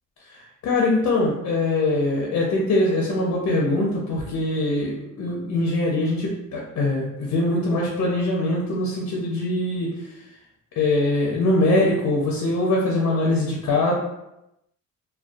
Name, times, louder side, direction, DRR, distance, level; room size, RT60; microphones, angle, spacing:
voice 1, 0.3-10.2 10.8-13.9, left 2 dB, 60° left, -2 dB, 0.6 m, -22 dB
2.5 x 2.2 x 2.3 m, 0.88 s
cardioid pair, 90°, 30 cm